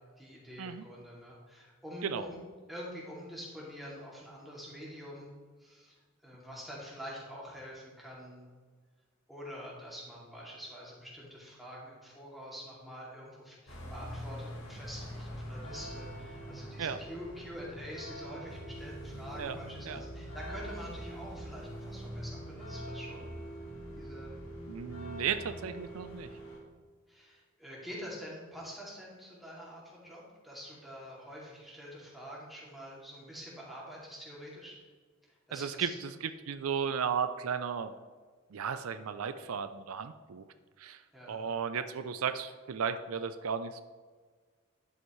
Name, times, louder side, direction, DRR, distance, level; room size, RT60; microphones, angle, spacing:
voice 1, 0.2-2.4 2.7-5.3 5.6-6.0 6.2-8.5 9.3-23.3 23.9-24.3 27.1-34.7 35.5-36.0 41.1-41.4, equal, ahead, -6 dB, 2.5 m, -46 dB
sound 1, 13.7-26.6, equal, 80° left, 2.8 m, -43 dB
voice 2, 24.7-26.3 35.5-37.9 38.5-40.4 40.8-41.0 41.3-43.8, right 7 dB, 80° right, 10 dB, 0.5 m, -35 dB
11.5 x 8.0 x 3.2 m, 1.5 s
head